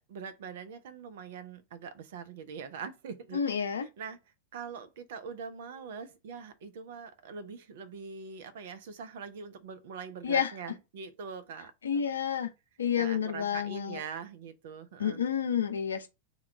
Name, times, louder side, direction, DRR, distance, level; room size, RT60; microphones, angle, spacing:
voice 1, 0.0-3.5 3.8-4.2 4.5-12.1 13.0-15.2, right 6 dB, 55° right, 0.5 m, -43 dB
voice 2, 3.3-3.9 10.2-10.5 11.8-12.5 12.8-14.0 15.0-16.1, left 8 dB, 70° left, 0.6 m, -29 dB
3.4 x 2.2 x 3.5 m
figure-of-eight pair, 90°, 0 cm